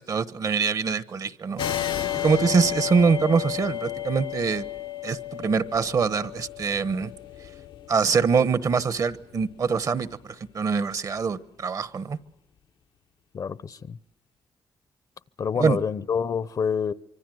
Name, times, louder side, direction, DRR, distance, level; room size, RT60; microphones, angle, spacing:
voice 1, 0.0-1.6 2.2-4.7 5.0-7.1 7.9-12.2 15.6-15.8, right 5 dB, 50° right, 1.1 m, -24 dB
sound 1, 1.6-8.7, left 11 dB, 80° left, 1.0 m, -32 dB
voice 2, 13.3-14.0 15.4-16.9, left 6 dB, 50° left, 0.8 m, -27 dB
25.5 x 24.5 x 7.8 m
cardioid pair, 105°, 8 cm